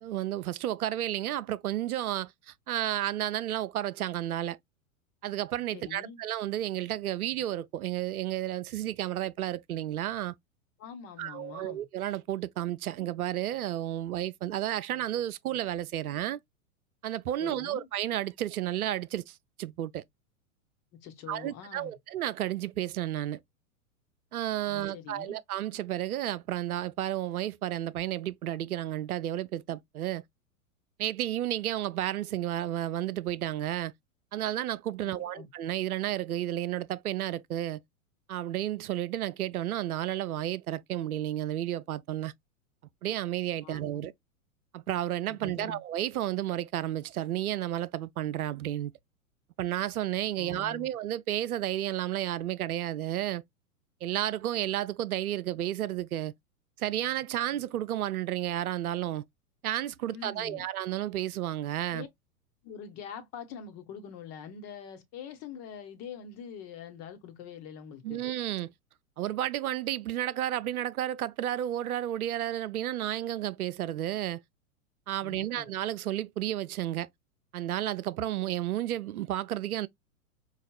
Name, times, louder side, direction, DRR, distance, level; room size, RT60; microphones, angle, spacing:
voice 1, 0.0-4.6 5.2-10.3 11.2-16.4 17.0-20.0 21.3-23.4 24.3-30.2 31.0-33.9 34.3-37.8 38.3-42.3 43.0-44.1 44.7-48.9 49.6-53.4 54.0-56.3 56.8-59.2 59.6-62.1 68.0-68.7 69.2-74.4 75.1-77.1 77.5-79.9, right 13 dB, 85° right, 0.5 m, -32 dB
voice 2, 5.7-6.2 10.8-11.8 17.4-17.9 21.0-22.0 24.7-25.4 35.0-35.5 43.6-44.1 45.3-45.8 50.4-50.9 60.1-60.6 61.9-62.1 62.6-68.2 75.2-75.7, left 7 dB, 35° left, 1.1 m, -44 dB
4.8 x 2.3 x 2.2 m
hypercardioid pair, 110°, 43 cm